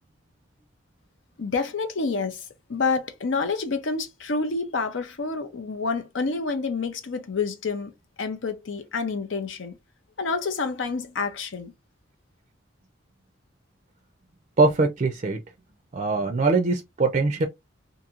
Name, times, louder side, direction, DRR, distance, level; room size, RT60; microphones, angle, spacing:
voice 1, 1.4-7.9 8.2-9.8 10.2-11.7, left 4 dB, 80° left, 0.6 m, -28 dB
voice 2, 14.6-15.4 15.9-17.5, right 3 dB, 40° right, 0.4 m, -22 dB
2.9 x 2.6 x 2.4 m
head